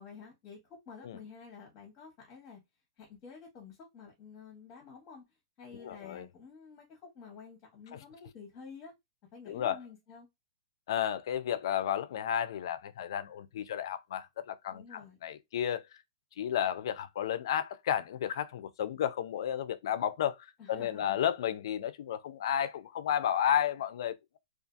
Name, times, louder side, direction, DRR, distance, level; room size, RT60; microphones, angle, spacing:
voice 1, 0.0-2.6 3.0-5.2 5.6-8.9 9.3-10.3 14.7-15.2 20.6-21.3, left 5 dB, 25° left, 0.8 m, -50 dB
voice 2, 5.8-6.3 9.5-9.8 10.9-15.8 16.4-20.4 20.7-24.4, left 10 dB, 55° left, 0.4 m, -32 dB
2.6 x 2.4 x 2.4 m
hypercardioid pair, 165°, 3 cm